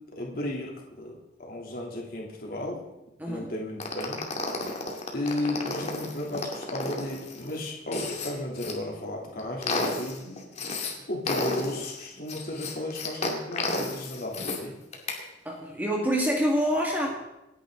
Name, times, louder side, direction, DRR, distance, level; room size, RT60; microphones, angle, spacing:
voice 1, 0.1-2.8 3.3-4.2 5.1-10.4 11.1-14.8, left 1 dB, 55° left, -2 dB, 3.1 m, -34 dB
voice 2, 3.2-3.5 15.5-17.3, equal, 10° right, -1 dB, 2.0 m, -26 dB
sound 1, 3.8-8.7 9.2-10.9 11.3-14.6 14.9-15.2, left 2 dB, 35° left, 2.4 m, -32 dB
27.0 x 10.5 x 3.9 m, 0.93 s
head